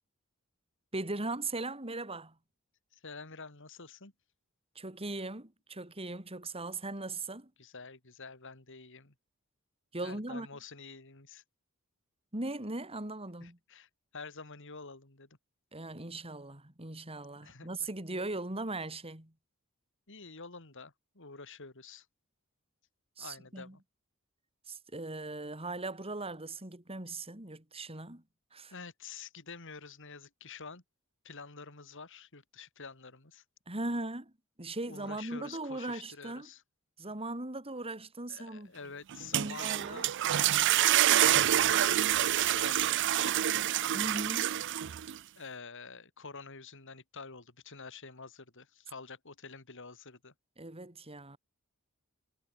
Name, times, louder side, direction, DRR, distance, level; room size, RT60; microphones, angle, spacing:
voice 1, 0.9-2.4 4.8-7.5 9.9-10.5 12.3-13.6 15.7-19.3 23.2-23.8 24.7-28.2 28.5-28.7 33.7-34.3 34.6-36.5 37.0-38.7 39.3-40.0 43.9-44.6 50.6-51.4, right 2 dB, 25° right, 3.7 m, -39 dB
voice 2, 2.9-4.1 7.6-9.1 10.0-11.4 13.4-15.3 17.4-17.7 20.1-22.0 23.2-23.8 28.7-30.8 31.2-33.4 34.9-36.6 38.3-40.1 41.1-43.6 45.3-50.3, left 4 dB, 60° left, 3.4 m, -48 dB
sound 1, 39.1-45.2, right 12 dB, 55° right, 0.5 m, -27 dB
head